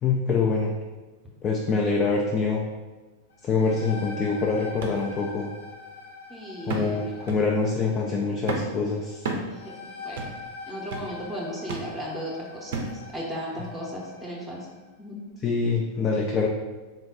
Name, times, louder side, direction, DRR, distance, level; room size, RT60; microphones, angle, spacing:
voice 1, 0.0-0.7 1.4-2.6 3.4-5.5 6.7-9.3 15.4-16.5, left 4 dB, 25° left, 0 dB, 0.3 m, -25 dB
sound 1, 3.3-14.8, left 4 dB, 70° left, 0.6 m, -43 dB
sound 2, 4.8-5.0 5.5-5.6 6.7-7.0 7.3-7.5 8.5-8.8 9.3-9.5 10.2-10.4 10.9-11.1 11.7-11.9 12.7-13.0 13.7-13.8, right 3 dB, 55° right, 0.4 m, -31 dB
voice 2, 6.3-7.3 9.5-9.8 10.0-10.3 10.7-12.7 13.1-14.7 15.0-15.2, equal, 5° right, -4 dB, 0.7 m, -36 dB
3.5 x 2.2 x 3.5 m, 1.2 s
figure-of-eight pair, 90°, 0 cm